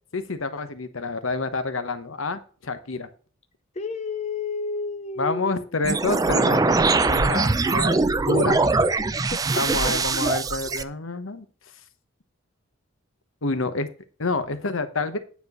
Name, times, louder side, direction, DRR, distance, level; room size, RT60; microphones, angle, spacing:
voice 1, 0.1-3.1 5.2-8.6 9.6-11.4 13.4-13.9 14.2-15.2, left 3 dB, 80° left, 10 dB, 1.0 m, -28 dB
voice 2, 3.8-5.7 9.3-9.4, left 3 dB, 35° left, 9 dB, 0.6 m, -30 dB
sound 1, 5.8-10.8, right 3 dB, 20° right, 0.4 m, -22 dB
9.4 x 4.5 x 6.6 m, 0.41 s
head